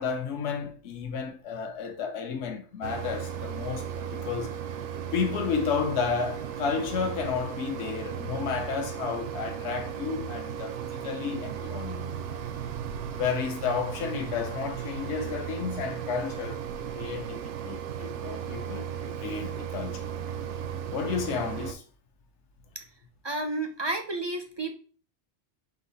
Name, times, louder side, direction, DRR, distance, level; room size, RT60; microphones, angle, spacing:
voice 1, 0.0-4.6 5.1-12.1 13.2-20.1 20.9-21.8, left 6 dB, 75° left, 1.0 m, -32 dB
Mechanisms, 2.8-21.7, right 8 dB, 85° right, 0.9 m, -36 dB
voice 2, 23.2-24.7, right 2 dB, 45° right, 0.3 m, -31 dB
5.5 x 2.4 x 4.0 m
omnidirectional pair, 1.2 m